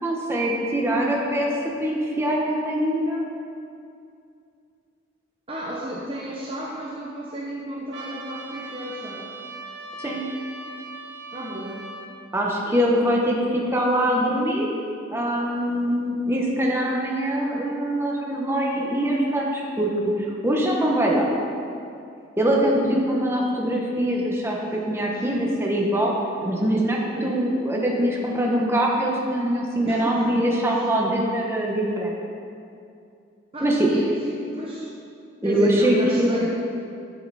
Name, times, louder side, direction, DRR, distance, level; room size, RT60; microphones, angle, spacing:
voice 1, 0.0-1.5 1.8-3.2 10.0-10.2 12.3-14.7 15.1-19.9 20.2-21.3 22.4-26.1 26.4-32.1 33.6-33.9 35.4-36.4, right 1 dB, 15° right, -2 dB, 1.2 m, -23 dB
voice 2, 5.5-9.3 11.3-11.9 27.1-27.5 29.8-30.8 33.5-34.9 35.4-36.5, right 1 dB, 30° right, -4 dB, 0.9 m, -33 dB
Trumpet, 7.9-12.1, right 3 dB, 60° right, 1.0 m, -39 dB
11.0 x 7.9 x 4.2 m, 2.5 s
head